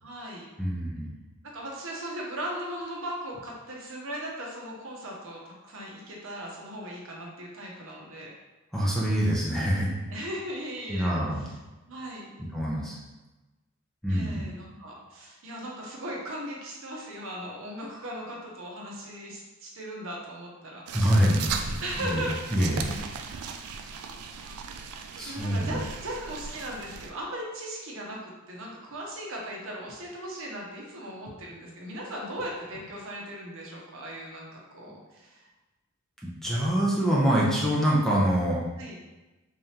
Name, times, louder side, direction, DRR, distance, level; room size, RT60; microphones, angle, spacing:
voice 1, 0.0-0.5 1.5-8.3 10.1-11.5 11.9-12.3 14.1-20.8 21.8-22.3 25.2-35.5 38.8-39.0, right 1 dB, 65° right, -2 dB, 0.8 m, -38 dB
voice 2, 0.6-1.1 8.7-9.9 10.9-11.4 12.5-13.0 14.0-14.5 20.9-22.2 22.5-23.0 23.3-23.4 25.2-25.8 36.2-38.6, equal, ahead, -6 dB, 0.6 m, -25 dB
sound 1, 20.9-27.1, right 5 dB, 85° right, 0.4 m, -37 dB
3.6 x 3.3 x 2.8 m, 1.1 s
head